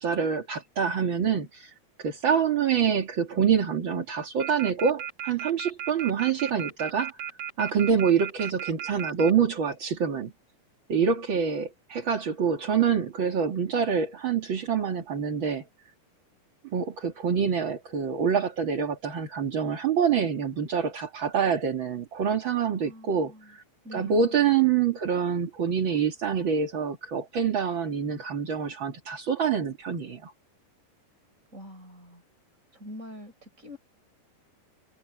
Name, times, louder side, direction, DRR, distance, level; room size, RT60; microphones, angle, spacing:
voice 1, 0.0-1.7 2.0-7.2 7.6-10.3 10.9-15.6 16.7-23.6 23.9-30.3, right 7 dB, 40° right, 2.0 m, -26 dB
sound 1, 4.4-9.3, right 10 dB, 60° right, 1.6 m, -34 dB
voice 2, 22.7-23.6 23.8-24.5 31.5-32.2 32.7-33.8, left 1 dB, 20° right, 5.4 m, -45 dB
omnidirectional pair, 4.7 m